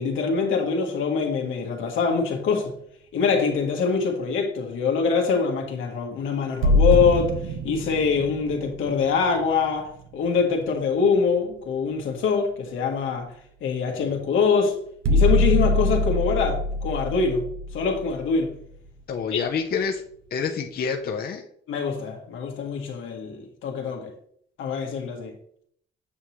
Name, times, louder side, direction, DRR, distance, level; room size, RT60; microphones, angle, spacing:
voice 1, 0.0-2.7 3.1-7.3 7.6-13.3 13.6-14.8 15.1-17.5 17.7-18.5 19.3-19.4 21.7-24.1 24.6-25.3, left 5 dB, 85° left, 1.5 m, -24 dB
sound 1, 6.6-10.4 14.0-14.1 15.0-18.9, left 1 dB, 90° right, 1.0 m, -24 dB
voice 2, 19.1-20.0 20.3-21.4, left 6 dB, 50° left, 0.7 m, -27 dB
8.5 x 5.5 x 3.1 m
cardioid pair, 90°, 20 cm